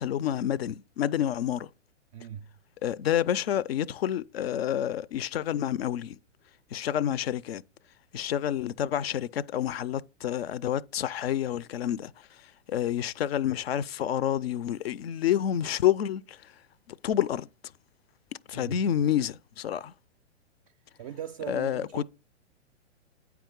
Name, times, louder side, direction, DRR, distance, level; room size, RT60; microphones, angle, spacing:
voice 1, 0.0-1.7 2.8-6.2 6.7-7.6 8.1-12.1 12.7-16.4 16.9-17.5 18.5-19.9 21.5-22.0, left 10 dB, 55° left, 0.5 m, -28 dB
voice 2, 2.1-2.5 18.5-18.8 21.0-22.0, right 10 dB, 30° right, 0.4 m, -39 dB
8.9 x 4.6 x 3.8 m
figure-of-eight pair, 110°, 36 cm